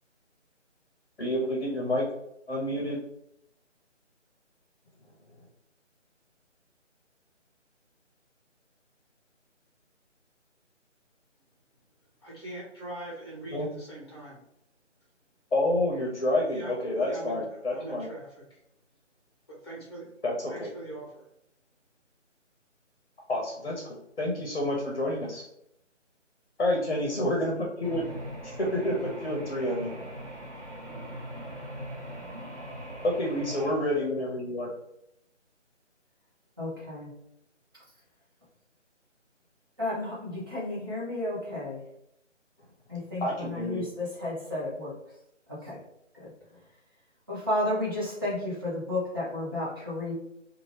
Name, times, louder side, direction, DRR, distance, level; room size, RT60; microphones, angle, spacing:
voice 1, 1.2-2.0 2.5-3.0 13.5-13.7 15.5-18.1 20.2-20.7 23.3-25.4 26.6-27.5 27.8-28.0 28.4-29.9 33.2-34.7 43.2-43.8, left 1 dB, 50° left, -1 dB, 0.8 m, -29 dB
voice 2, 12.2-14.4 16.5-16.7 17.0-17.4 17.7-18.6 19.5-20.1 20.5-21.2, right 2 dB, 20° left, -5 dB, 0.9 m, -42 dB
sound 1, 27.8-33.7, equal, 65° right, 1.3 m, -40 dB
voice 3, 36.6-37.1 39.8-41.9 42.9-45.0 45.5-45.8 46.1-46.3 47.3-50.1, left 1 dB, 20° right, -9 dB, 0.8 m, -32 dB
2.7 x 2.4 x 3.2 m, 0.79 s
figure-of-eight pair, 155°, 37 cm